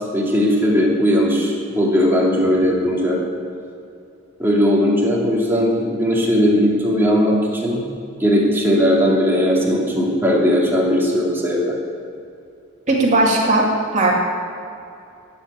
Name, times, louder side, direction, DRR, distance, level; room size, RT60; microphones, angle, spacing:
voice 1, 0.1-3.2 4.4-7.8 8.2-11.7, equal, 10° right, -4 dB, 2.6 m, -18 dB
voice 2, 12.9-14.1, right 2 dB, 35° right, -2 dB, 2.5 m, -17 dB
13.0 x 7.9 x 9.6 m, 2.6 s
head